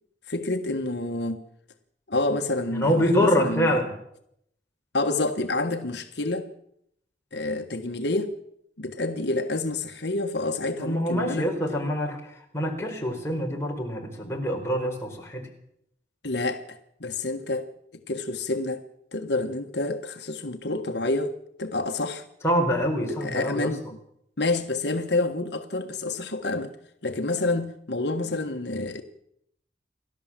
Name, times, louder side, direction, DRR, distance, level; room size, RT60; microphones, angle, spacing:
voice 1, 0.3-1.5 2.1-3.7 4.9-6.5 7.3-8.3 8.8-11.5 16.2-18.8 19.1-22.2 23.1-23.8 24.4-26.7 27.0-29.0, left 2 dB, 70° left, 1.4 m, -28 dB
voice 2, 2.7-3.9 10.8-15.5 22.4-23.7, equal, 15° left, 4.6 m, -25 dB
29.0 x 13.0 x 7.5 m
head